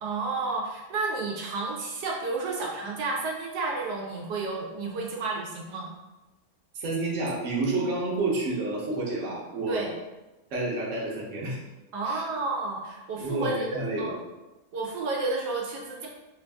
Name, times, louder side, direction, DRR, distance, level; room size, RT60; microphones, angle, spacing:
voice 1, 0.0-5.9 9.7-9.9 11.9-14.1 14.7-16.1, right 3 dB, 80° right, -2 dB, 1.2 m, -31 dB
voice 2, 6.7-9.8 10.5-11.6 12.0-12.2 13.2-14.1, right 2 dB, 55° right, -4 dB, 1.1 m, -29 dB
3.2 x 2.6 x 3.4 m, 1.1 s
omnidirectional pair, 1.8 m